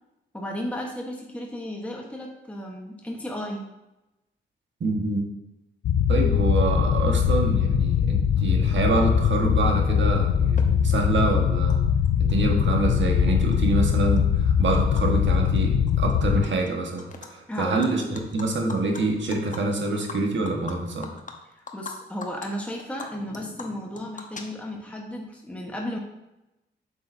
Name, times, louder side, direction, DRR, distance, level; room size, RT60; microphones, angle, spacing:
voice 1, 0.3-3.7 17.5-18.0 21.5-26.0, equal, 5° left, -1 dB, 1.2 m, -34 dB
voice 2, 4.8-5.2 6.1-11.8 12.2-21.1, right 3 dB, 65° right, 2 dB, 1.5 m, -26 dB
sound 1, 5.8-16.5, left 8 dB, 75° left, 0.5 m, -21 dB
Animal, 10.6-10.7 11.7-11.8 12.0-12.9 13.3-15.0 15.3-15.6 15.9-16.7 17.0-17.3 17.6-21.9 22.2-22.5 22.8-24.9, left 4 dB, 40° left, 1.0 m, -41 dB
7.6 x 7.1 x 2.7 m, 0.96 s
cardioid pair, 60°, 21 cm